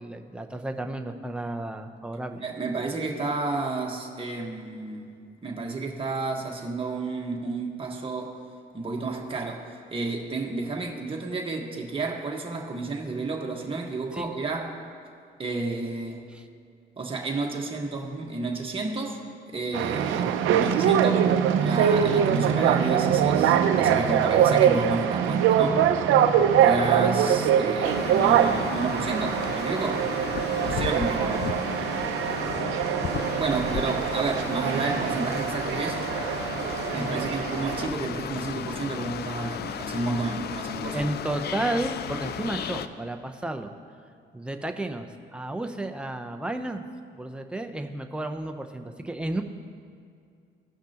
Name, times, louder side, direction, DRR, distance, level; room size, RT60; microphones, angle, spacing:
voice 1, 0.0-2.4 14.1-14.3 16.3-16.4 26.1-26.4 36.9-37.2 40.9-43.7 44.3-46.8 47.1-49.4, right 1 dB, 5° right, 5 dB, 0.7 m, -32 dB
voice 2, 2.3-5.1 5.4-8.4 8.7-14.8 15.4-16.3 17.0-19.2 19.5-21.3 21.6-25.9 26.6-30.1 30.6-31.6 33.3-36.1 36.9-41.1, right 3 dB, 25° right, 0 dB, 1.4 m, -31 dB
sound 1, 19.7-37.9, right 8 dB, 85° right, 0.6 m, -23 dB
sound 2, 27.8-42.9, left 8 dB, 55° left, 0.4 m, -34 dB
16.5 x 5.9 x 2.9 m, 2.3 s
cardioid pair, 90°, 20 cm